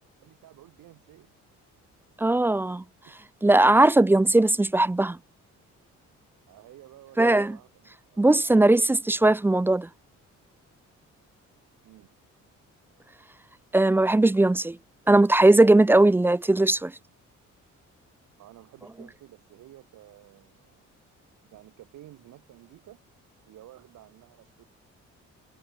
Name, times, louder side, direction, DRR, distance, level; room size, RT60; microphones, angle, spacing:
voice 1, 0.2-1.3 3.0-3.2 6.5-9.0 11.8-12.1 18.4-20.9 21.5-23.0 23.5-24.7, right 14 dB, 85° right, 3.3 m, -52 dB
voice 2, 2.2-2.8 3.4-5.2 7.2-7.6 8.2-9.9 13.7-14.8 15.1-16.9, right 2 dB, 10° right, 0.3 m, -19 dB
cardioid pair, 90°, 30 cm